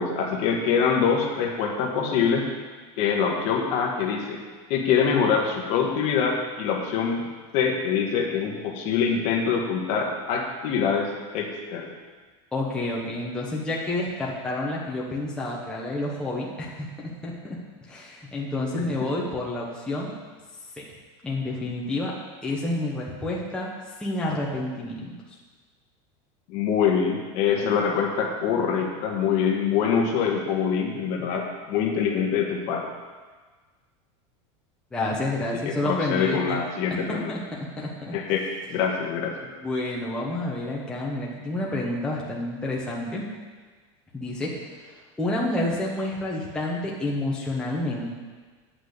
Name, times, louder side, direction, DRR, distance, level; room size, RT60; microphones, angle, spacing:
voice 1, 0.0-2.5 3.0-4.4 4.7-7.3 7.5-11.9 18.7-18.9 26.5-32.9 35.6-37.3 38.1-39.3, left 6 dB, 45° left, 1 dB, 1.5 m, -24 dB
voice 2, 12.5-17.6 17.9-20.1 20.8-20.9 21.2-22.1 22.4-23.7 24.0-25.1 34.9-36.6 37.1-38.1 39.4-43.2 44.1-44.6 45.2-48.1, left 2 dB, 5° left, -4 dB, 1.2 m, -29 dB
8.7 x 6.1 x 8.1 m, 1.4 s
supercardioid pair, 170°, 15 cm